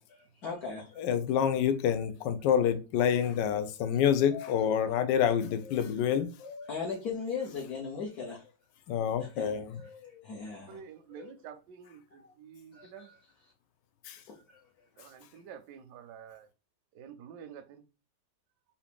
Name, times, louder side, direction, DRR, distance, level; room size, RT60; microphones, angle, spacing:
voice 1, 0.4-1.0 3.0-3.2 4.3-4.6 5.6-5.8 6.4-8.5 9.2-10.8 11.2-11.3 12.7-13.2 14.3-14.6, left 5 dB, 60° left, 1.4 m, -39 dB
voice 2, 1.0-6.3 8.9-9.8 14.0-14.2, left 8 dB, 80° left, 1.2 m, -27 dB
voice 3, 10.7-13.1 15.0-16.5 16.9-17.8, right 8 dB, 75° right, 1.1 m, -49 dB
4.9 x 2.8 x 3.4 m
omnidirectional pair, 1.9 m